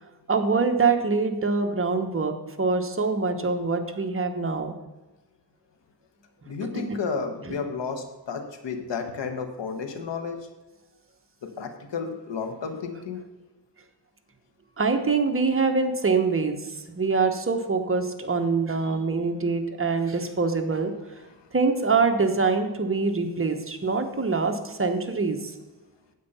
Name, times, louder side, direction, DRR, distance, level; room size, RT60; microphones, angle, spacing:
voice 1, 0.3-4.7 14.8-16.6 16.9-20.9 21.5-25.5, right 4 dB, 30° right, 5 dB, 1.2 m, -24 dB
voice 2, 6.5-10.5 11.4-13.3 18.8-19.3 21.3-21.5, left 5 dB, 90° left, 7 dB, 1.3 m, -33 dB
9.3 x 8.3 x 5.5 m, 1.1 s
wide cardioid pair, 100°, 42 cm